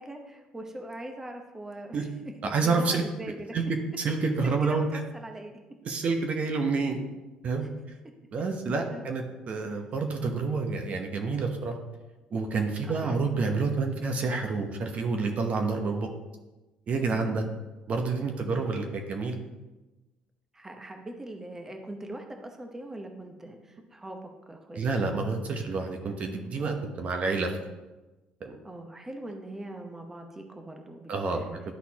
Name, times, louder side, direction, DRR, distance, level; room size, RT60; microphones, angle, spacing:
voice 1, 0.0-2.1 2.4-3.6 4.4-5.5 7.0-7.1 7.6-7.7 8.9-9.1 12.8-13.2 18.4-18.6 20.5-24.8 25.5-25.8 28.6-31.6, right 1 dB, 15° right, 3 dB, 0.9 m, -42 dB
voice 2, 2.4-3.0 3.5-3.6 4.0-4.8 5.8-7.0 7.4-7.7 8.3-11.8 12.3-16.1 16.9-17.4 17.9-19.3 24.8-27.5 28.4-28.6 31.1-31.4, right 4 dB, 50° right, 4 dB, 0.9 m, -28 dB
11.5 x 4.0 x 2.9 m, 1.1 s
supercardioid pair, 85°, 3 cm